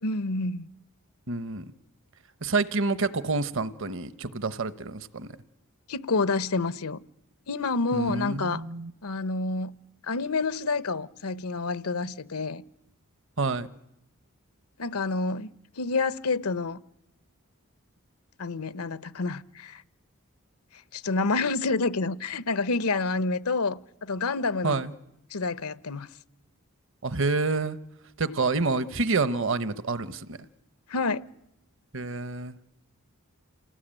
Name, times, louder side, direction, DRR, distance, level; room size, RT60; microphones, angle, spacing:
voice 1, 0.0-0.7 5.9-7.0 7.5-8.6 9.0-9.7 10.1-12.6 14.8-15.5 15.8-16.8 18.4-19.8 20.9-24.8 25.3-26.1 30.9-31.2, left 3 dB, 85° left, 0.9 m, -28 dB
voice 2, 1.3-1.7 2.4-5.3 7.9-8.9 13.4-13.7 24.6-24.9 27.0-27.8 28.2-30.4 31.9-32.6, right 3 dB, 60° right, 1.0 m, -28 dB
28.0 x 18.5 x 8.9 m
head